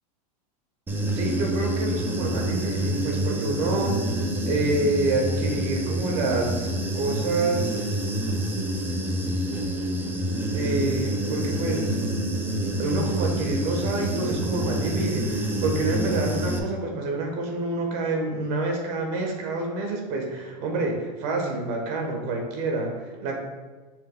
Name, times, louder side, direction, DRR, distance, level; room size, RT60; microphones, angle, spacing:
Human voice / Buzz, 0.9-16.6, right 1 dB, 10° right, 0.5 m, -27 dB
voice 1, 1.1-6.7 6.9-8.0 10.5-12.0 12.8-23.4, right 2 dB, 50° right, 2 dB, 1.3 m, -28 dB
6.6 x 6.6 x 2.3 m, 1.3 s
supercardioid pair, 145°, 21 cm